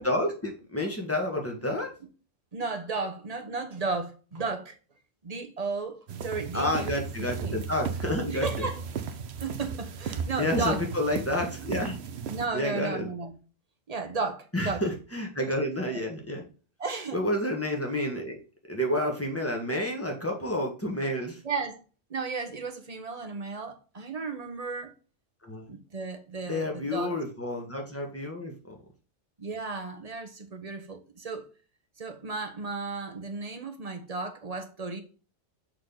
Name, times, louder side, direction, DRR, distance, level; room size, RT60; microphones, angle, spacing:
voice 1, 0.0-1.9 6.5-8.7 10.4-12.0 12.5-13.1 14.5-16.5 17.1-18.4 18.7-21.4 25.4-25.7 26.5-28.7, left 1 dB, 10° left, 1.7 m, -30 dB
voice 2, 2.5-4.8 5.2-7.0 7.4-7.6 8.3-8.8 9.4-10.8 12.3-13.3 13.9-14.8 15.9-16.0 16.8-17.2 21.4-21.8 22.1-24.9 25.7-27.1 29.4-31.5 32.0-35.0, right 4 dB, 30° right, 1.1 m, -34 dB
sound 1, 6.1-12.5, right 6 dB, 60° right, 1.0 m, -35 dB
6.4 x 4.3 x 3.9 m
omnidirectional pair, 1.3 m